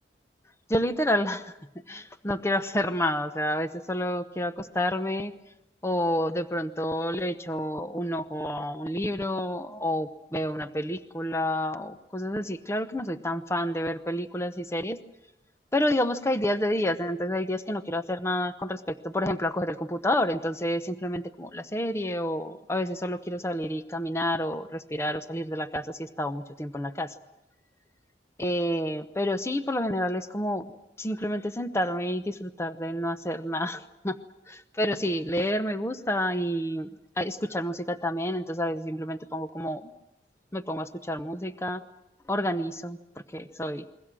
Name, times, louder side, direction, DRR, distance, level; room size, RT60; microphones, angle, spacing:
voice 1, 0.7-1.6 1.9-5.3 5.8-15.0 15.7-27.1 28.4-30.7 31.0-34.2 34.5-36.9 37.2-39.9 40.5-41.8 42.3-43.0 43.3-43.9, left 1 dB, 15° left, 10 dB, 0.9 m, -29 dB
29.0 x 22.5 x 7.6 m, 0.87 s
head